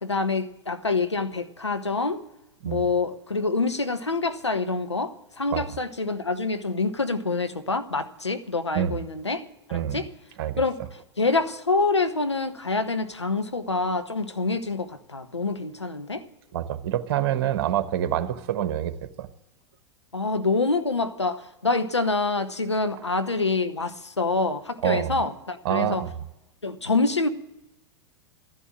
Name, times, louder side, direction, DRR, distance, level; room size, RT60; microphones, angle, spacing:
voice 1, 0.0-2.2 2.6-9.4 9.7-10.1 10.6-16.2 20.1-26.0 26.6-27.3, left 3 dB, 85° left, 0.9 m, -26 dB
voice 2, 16.5-19.3 24.8-25.2 25.6-26.2, right 11 dB, 55° right, 1.2 m, -26 dB
13.5 x 11.5 x 7.5 m
figure-of-eight pair, 95°, 14 cm